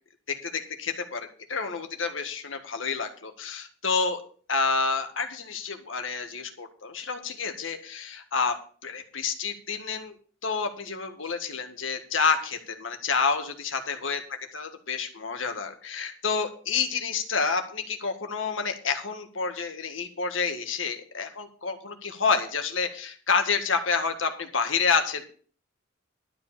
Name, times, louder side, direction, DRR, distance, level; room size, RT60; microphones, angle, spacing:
voice 1, 0.3-4.2 4.5-8.6 8.8-10.2 10.4-14.2 14.5-25.2, left 5 dB, 85° left, 6 dB, 1.8 m, -29 dB
12.0 x 5.0 x 8.7 m, 0.43 s
head